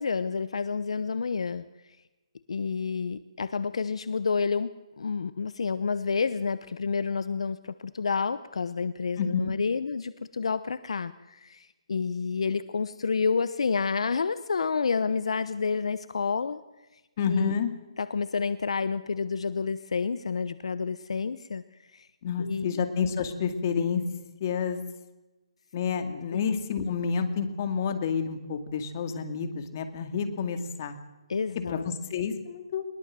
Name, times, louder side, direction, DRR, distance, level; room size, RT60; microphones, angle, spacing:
voice 1, 0.0-1.6 2.5-16.6 17.2-17.5 18.0-21.6 21.9-22.1 22.4-22.7 26.3-26.4 31.3-31.9, left 5 dB, 70° left, 14 dB, 0.9 m, -29 dB
voice 2, 9.2-9.5 17.2-17.7 22.2-24.0 24.4-24.8 25.7-31.0 31.7-32.8, left 6 dB, 30° left, 7 dB, 2.2 m, -29 dB
21.0 x 21.0 x 7.6 m, 1.1 s
hypercardioid pair, 170°, 3 cm